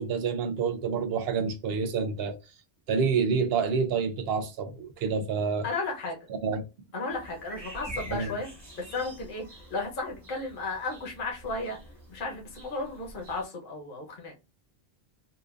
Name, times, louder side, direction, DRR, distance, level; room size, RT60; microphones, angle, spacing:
voice 1, 0.0-2.4 2.9-5.6 6.4-6.6 8.1-8.3, right 5 dB, 70° right, 0.8 m, -28 dB
voice 2, 5.6-6.3 6.9-8.5 8.7-9.4 9.7-11.8 12.1-14.3, left 3 dB, 55° left, 1.1 m, -34 dB
sound 1, 7.1-13.4, right 1 dB, 35° right, 1.4 m, -45 dB
4.0 x 2.5 x 2.4 m
omnidirectional pair, 1.1 m